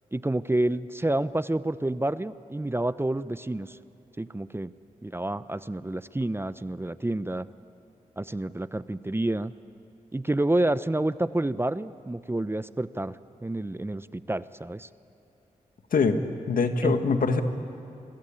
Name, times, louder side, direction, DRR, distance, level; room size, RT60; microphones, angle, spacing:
voice 1, 0.1-3.8 4.2-4.7 5.0-7.5 8.2-9.5 10.1-13.1 13.4-14.9 16.8-17.0, right 1 dB, 15° right, 15 dB, 0.8 m, -28 dB
voice 2, 16.5-17.4, left 4 dB, 70° left, 7 dB, 1.9 m, -23 dB
28.0 x 22.0 x 8.9 m, 2.8 s
supercardioid pair, 40°, 15 cm